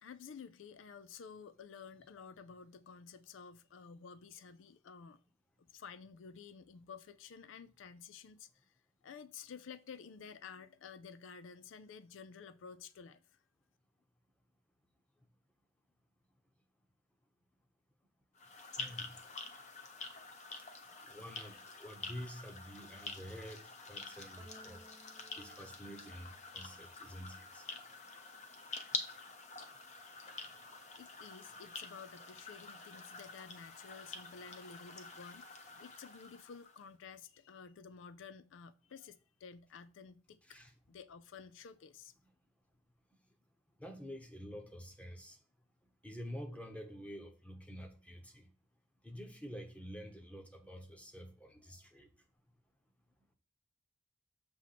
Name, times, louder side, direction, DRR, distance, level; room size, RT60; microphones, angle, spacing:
voice 1, 0.0-5.2 5.6-8.7 9.0-13.4 30.5-30.6 30.9-40.4 40.9-42.1, left 6 dB, 75° left, 0.4 m, -52 dB
sound 1, 18.3-36.8, left 4 dB, 35° left, 0.9 m, -47 dB
voice 2, 18.8-19.1 21.0-23.6 23.9-24.8 25.4-27.6 40.5-40.7 43.8-45.4 46.0-48.5 49.0-52.1, equal, 5° left, 1.0 m, -48 dB
sound 2, 24.4-27.0, right 2 dB, 25° right, 0.7 m, -61 dB
7.1 x 3.0 x 5.8 m
head